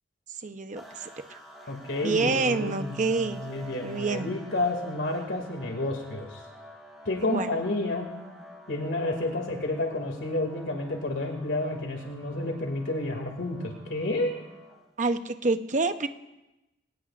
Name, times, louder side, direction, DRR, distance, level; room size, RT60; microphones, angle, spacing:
voice 1, 0.4-1.4 2.0-4.3 7.2-7.5 15.0-16.1, right 3 dB, 40° right, 8 dB, 0.8 m, -28 dB
sound 1, 0.8-15.0, equal, ahead, 4.2 m, -48 dB
voice 2, 1.7-6.4 7.1-8.1 8.7-14.4, left 2 dB, 85° left, 2 dB, 2.4 m, -30 dB
23.0 x 18.5 x 2.5 m, 0.98 s
head